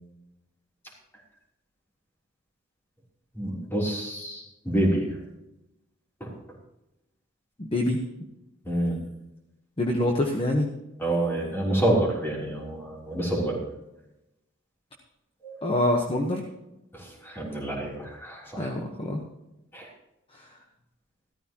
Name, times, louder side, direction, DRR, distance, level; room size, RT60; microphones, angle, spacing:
voice 1, 3.3-5.2 6.2-6.4 8.6-9.1 11.0-13.6 15.4-15.6 16.9-18.7 19.7-19.9, right 1 dB, 10° left, -4 dB, 3.4 m, -28 dB
voice 2, 7.6-8.0 9.8-10.7 15.6-16.4 18.6-19.2 20.3-20.5, left 1 dB, 25° left, 1 dB, 1.2 m, -25 dB
15.0 x 13.5 x 3.0 m, 0.92 s
head